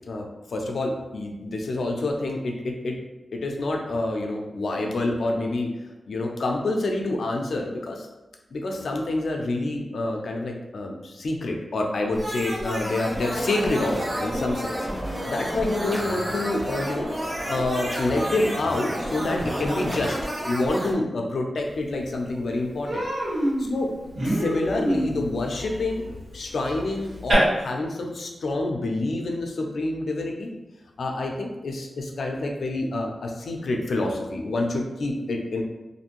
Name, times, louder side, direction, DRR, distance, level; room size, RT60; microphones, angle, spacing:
voice 1, 0.1-3.0 3.3-5.7 6.1-8.1 8.5-20.2 20.5-23.0 23.7-23.9 24.2-30.5 31.0-35.6, left 2 dB, 80° left, 2 dB, 0.4 m, -27 dB
sound 1, 12.1-20.9, equal, 25° right, 0.6 m, -31 dB
sound 2, 13.1-20.1, equal, 10° right, 1.2 m, -35 dB
Human voice, 21.8-21.9 22.3-22.5 22.8-27.3, equal, 80° right, 1.4 m, -28 dB
2.6 x 2.5 x 2.9 m, 1.1 s
wide cardioid pair, 110°, 0 cm